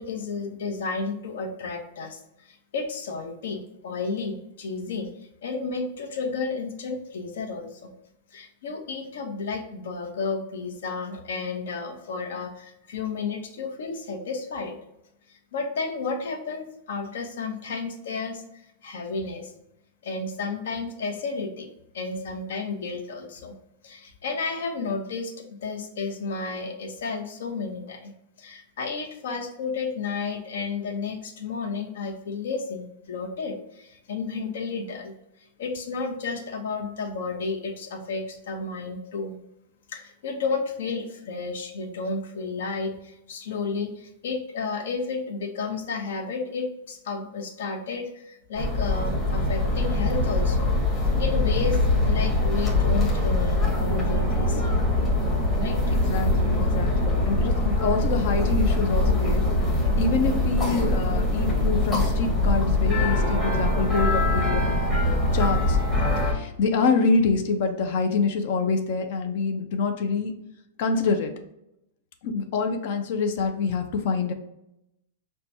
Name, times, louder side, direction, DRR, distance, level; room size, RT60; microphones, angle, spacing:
voice 1, 0.0-2.2 2.5-5.1 5.4-7.9 8.3-14.8 15.3-18.4 18.8-19.5 20.0-21.7 21.9-23.5 23.8-28.1 28.4-35.1 35.6-39.3 39.9-50.7 51.0-51.8 52.0-54.8 55.5-55.8, left 4 dB, 70° left, 4 dB, 0.9 m, -32 dB
sound 1, 48.5-66.3, left 2 dB, 10° left, 0.9 m, -23 dB
voice 2, 56.0-59.4 60.0-65.8 66.2-70.3 70.8-71.3 72.2-74.3, left 4 dB, 50° left, 5 dB, 0.5 m, -26 dB
5.7 x 2.2 x 2.7 m, 0.83 s
supercardioid pair, 170°, 0 cm